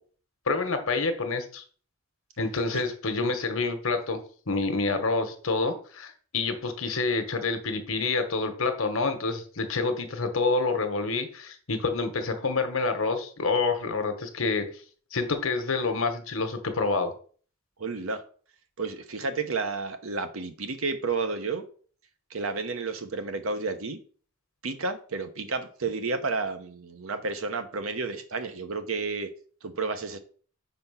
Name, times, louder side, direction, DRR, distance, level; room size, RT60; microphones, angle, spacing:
voice 1, 0.5-1.6 2.4-4.2 4.5-14.7 15.1-17.1, left 3 dB, 75° left, 1.1 m, -27 dB
voice 2, 17.8-18.2 18.8-21.6 22.3-24.0 24.6-29.3 29.6-30.2, right 4 dB, 85° right, 0.9 m, -31 dB
5.5 x 4.3 x 5.6 m
head